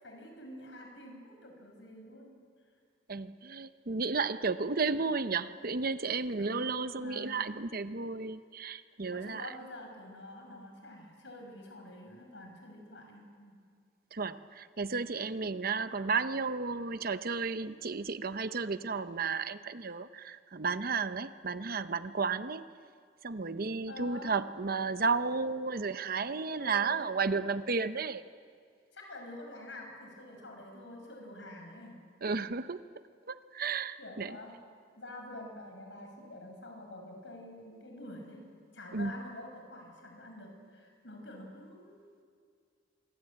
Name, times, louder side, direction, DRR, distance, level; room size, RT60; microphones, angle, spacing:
voice 1, 0.0-2.3 6.4-7.4 9.1-13.6 23.9-24.3 26.6-27.4 28.9-32.0 34.0-34.5 34.9-38.4 38.7-42.3, left 1 dB, 75° left, 3 dB, 6.8 m, -47 dB
voice 2, 3.1-9.6 14.1-22.6 23.2-28.2 32.2-32.8 33.3-34.4 38.9-39.2, right 4 dB, 55° right, 12 dB, 0.9 m, -33 dB
26.5 x 23.5 x 8.7 m, 2.1 s
head